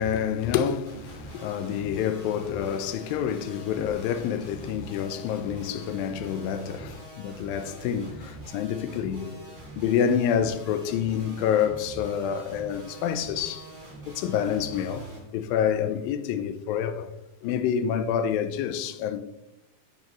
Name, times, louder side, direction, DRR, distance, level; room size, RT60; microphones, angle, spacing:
voice 1, 0.0-9.5 9.8-13.7 14.1-15.1 15.3-17.1 17.4-19.2, left 8 dB, 90° left, 2.4 m, -28 dB
sound 1, 0.9-15.2, right 1 dB, 15° right, 2.1 m, -44 dB
10.0 x 6.5 x 3.0 m
omnidirectional pair, 4.0 m